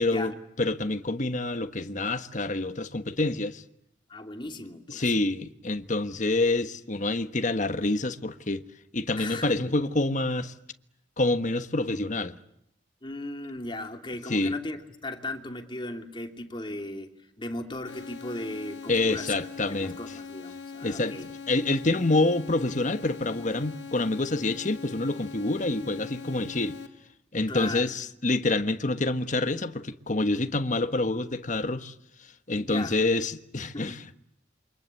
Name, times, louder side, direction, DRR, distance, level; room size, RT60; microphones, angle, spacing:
voice 1, 0.0-3.6 4.9-8.6 8.9-10.5 11.2-12.4 14.3-14.5 18.9-20.0 20.8-26.8 27.3-31.9 32.5-34.1, left 2 dB, 40° left, 1.3 m, -27 dB
voice 2, 4.1-5.1 9.2-9.7 13.0-19.3 19.7-21.2 27.5-27.9 32.6-33.0 33.7-34.0, left 2 dB, 25° left, 2.7 m, -37 dB
sound 1, 17.9-26.9, left 5 dB, 80° left, 2.5 m, -41 dB
28.0 x 25.5 x 8.3 m
head